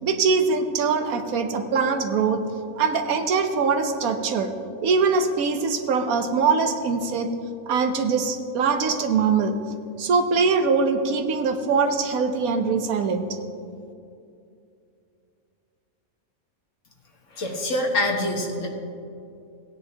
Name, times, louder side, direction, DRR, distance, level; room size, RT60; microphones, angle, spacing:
voice 1, 0.0-2.4 2.8-4.5 4.8-7.3 7.7-9.6 10.0-13.3, right 5 dB, 80° right, 6 dB, 1.3 m, -22 dB
voice 2, 17.4-18.7, left 1 dB, 60° left, 1 dB, 1.7 m, -25 dB
17.0 x 9.8 x 2.9 m, 2.5 s
omnidirectional pair, 1.5 m